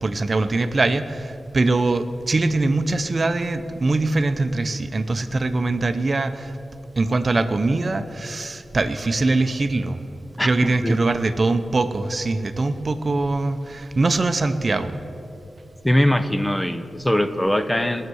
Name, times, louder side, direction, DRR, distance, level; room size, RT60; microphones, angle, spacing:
voice 1, 0.0-6.5 7.0-10.0 10.4-15.0, right 3 dB, 45° right, 9 dB, 0.7 m, -22 dB
voice 2, 10.4-11.0 15.8-18.1, left 1 dB, 10° left, 10 dB, 0.6 m, -21 dB
18.5 x 6.6 x 7.9 m, 2.7 s
wide cardioid pair, 85°, 0 cm